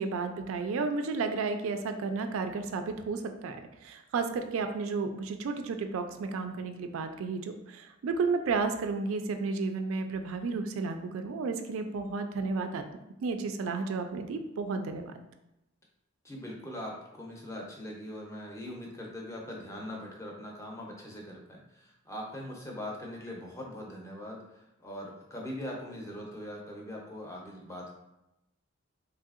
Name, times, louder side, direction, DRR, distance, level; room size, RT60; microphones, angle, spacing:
voice 1, 0.0-3.6 3.8-12.8 13.2-15.1, right 4 dB, 70° right, 7 dB, 0.3 m, -32 dB
voice 2, 16.2-24.4 24.8-27.9, left 1 dB, 15° left, -1 dB, 0.5 m, -41 dB
3.3 x 2.7 x 2.4 m, 0.90 s
head